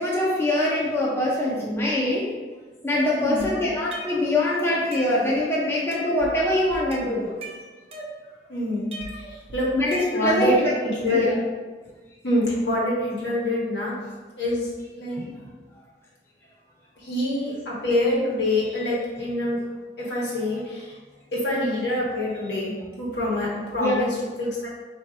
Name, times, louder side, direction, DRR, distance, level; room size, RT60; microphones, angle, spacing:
voice 1, 0.0-2.3 2.8-7.3 9.7-10.7 11.1-11.4 23.8-23.9, left 1 dB, 15° left, -5 dB, 0.6 m, -23 dB
sound 1, 2.9-4.4 4.7-5.5 5.9-6.4 6.7-8.5 8.9-10.5, equal, 35° right, 0.6 m, -39 dB
voice 2, 3.1-3.6 8.5-9.8 10.1-10.6 10.8-11.3 12.2-14.0 14.4-14.7 15.0-15.5 17.0-19.6 20.0-21.0 21.3-24.7, left 1 dB, 75° left, -5 dB, 1.3 m, -26 dB
3.5 x 2.7 x 4.7 m, 1.3 s
head